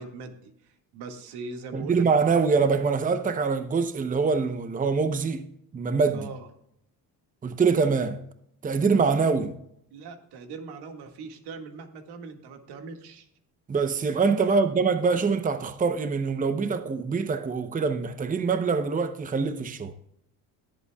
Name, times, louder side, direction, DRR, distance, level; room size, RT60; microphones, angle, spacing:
voice 1, 0.0-2.5 6.1-6.5 9.9-13.3 14.5-14.6, right 4 dB, 80° right, 1.9 m, -41 dB
voice 2, 1.7-5.5 5.7-6.3 7.4-8.2 8.6-9.5 13.7-19.9, right 5 dB, 20° right, 0.8 m, -24 dB
21.0 x 8.3 x 2.3 m
cardioid pair, 105°, 39 cm